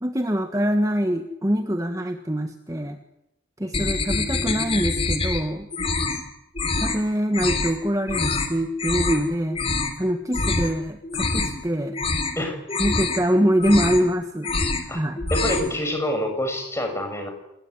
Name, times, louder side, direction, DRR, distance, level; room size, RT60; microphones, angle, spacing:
voice 1, 0.0-3.0 3.6-5.7 6.8-9.6 10.0-12.0 12.8-14.5 14.9-15.2, equal, 15° right, 6 dB, 1.3 m, -24 dB
sound 1, 3.7-5.4 5.7-6.2 6.5-7.0 7.3-7.7 8.1-8.5 8.8-9.2 9.5-10.0 10.3-10.7 11.0-11.6 11.9-12.4 12.7-13.2 13.5-14.1 14.4-14.9 15.2-15.7, left 3 dB, 30° left, 3.3 m, -25 dB
voice 2, 15.3-17.3, left 1 dB, 15° left, 5 dB, 6.3 m, -26 dB
27.5 x 20.0 x 9.8 m, 0.88 s
head